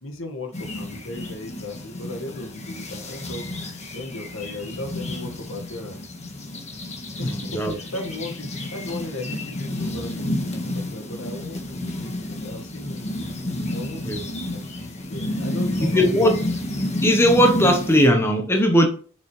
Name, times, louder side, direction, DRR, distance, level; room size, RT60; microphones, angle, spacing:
voice 1, 0.0-3.5 3.9-6.0 7.2-13.3 13.7-14.3 14.5-16.4, left 1 dB, 75° left, 1.8 m, -36 dB
sound 1, 0.5-18.1, left 1 dB, 35° left, 1.5 m, -30 dB
voice 2, 7.2-7.7 14.0-14.2 15.8-16.3 17.0-18.9, equal, 10° left, 1.1 m, -18 dB
7.2 x 6.2 x 3.2 m
head